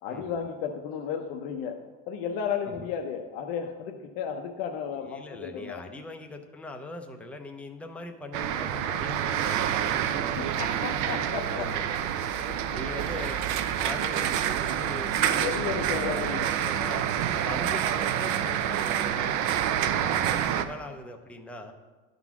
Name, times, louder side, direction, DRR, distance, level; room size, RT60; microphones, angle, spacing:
voice 1, 0.0-5.9 10.2-11.7 12.4-12.7 15.4-16.4, left 7 dB, 80° left, 3 dB, 0.8 m, -34 dB
voice 2, 4.9-9.9 11.5-11.8 12.7-13.4 13.8-17.1 17.4-21.7, left 2 dB, 5° left, 4 dB, 0.5 m, -41 dB
sound 1, 8.3-20.6, right 10 dB, 65° right, 0.6 m, -27 dB
11.0 x 4.0 x 5.9 m, 1.3 s
cardioid pair, 145°, 31 cm